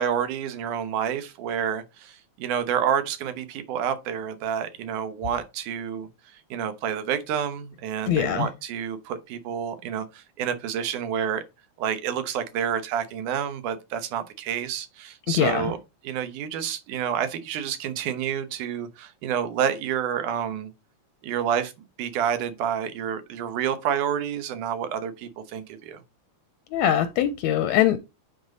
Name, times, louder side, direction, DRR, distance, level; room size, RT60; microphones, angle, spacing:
voice 1, 0.0-6.1 6.5-11.4 11.8-15.8 16.0-20.7 21.2-21.7 22.0-26.0, right 8 dB, 85° right, 2.5 m, -29 dB
voice 2, 8.1-8.5 15.3-15.7 26.7-28.0, left 11 dB, 80° left, 1.7 m, -22 dB
9.9 x 4.1 x 3.9 m
omnidirectional pair, 3.5 m